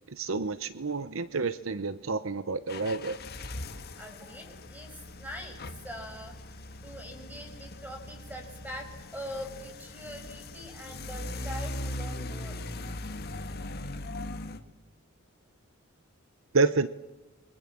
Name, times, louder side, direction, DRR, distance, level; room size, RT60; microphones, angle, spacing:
voice 1, 0.1-3.2 16.5-16.9, right 4 dB, 65° right, 14 dB, 0.9 m, -29 dB
sound 1, 2.7-14.6, left 1 dB, 45° left, 1.8 m, -40 dB
voice 2, 4.0-5.6 5.8-12.6, equal, 10° right, 4 dB, 6.5 m, -43 dB
29.5 x 23.5 x 7.6 m, 1.0 s
head